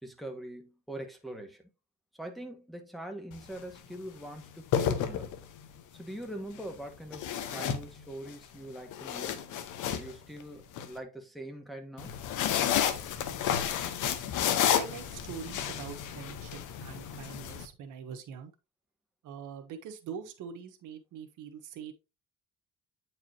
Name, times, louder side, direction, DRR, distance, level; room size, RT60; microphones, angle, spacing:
voice 1, 0.0-1.6 2.2-5.3 5.9-9.4 9.9-12.1, right 1 dB, ahead, 1.8 m, -43 dB
sound 1, 3.3-3.6 4.5-5.7 7.1-8.3 8.8-10.9 12.0-17.7, left 9 dB, 85° left, 1.0 m, -31 dB
voice 2, 14.7-18.5 19.2-21.9, right 7 dB, 85° right, 1.2 m, -43 dB
8.6 x 4.8 x 2.9 m
cardioid pair, 90°, 30 cm